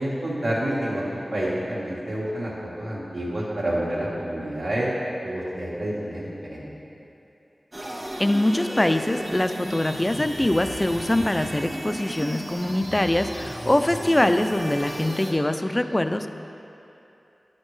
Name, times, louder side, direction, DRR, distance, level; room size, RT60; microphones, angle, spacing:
voice 1, 0.0-4.9 5.2-6.7, right 1 dB, 80° right, -6 dB, 1.6 m, -28 dB
sound 1, 7.7-15.3, right 1 dB, 35° right, 1.4 m, -34 dB
voice 2, 8.2-16.3, left 1 dB, 20° left, 8 dB, 0.3 m, -23 dB
10.0 x 6.3 x 3.2 m, 2.8 s
wide cardioid pair, 60°, 0 cm